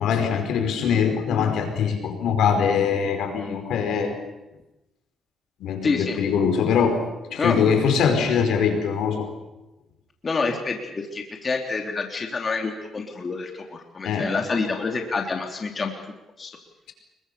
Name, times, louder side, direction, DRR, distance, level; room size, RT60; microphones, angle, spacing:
voice 1, 0.0-4.1 5.6-7.0 7.3-9.3 14.0-14.3, left 6 dB, 80° left, 6 dB, 5.0 m, -22 dB
voice 2, 5.8-6.2 7.4-7.6 10.2-15.9 16.4-16.6, left 4 dB, 35° left, 3 dB, 3.3 m, -27 dB
26.0 x 23.0 x 6.9 m, 0.98 s
cardioid pair, 90°, 0 cm